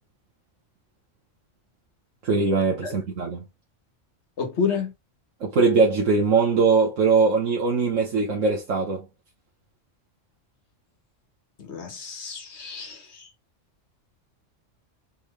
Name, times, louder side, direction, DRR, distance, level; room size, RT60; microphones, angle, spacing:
voice 1, 2.2-3.4 5.4-9.0, right 4 dB, 85° right, 1.5 m, -21 dB
voice 2, 4.4-4.9 11.6-13.3, left 6 dB, 60° left, 1.5 m, -30 dB
4.2 x 3.7 x 3.2 m
omnidirectional pair, 1.3 m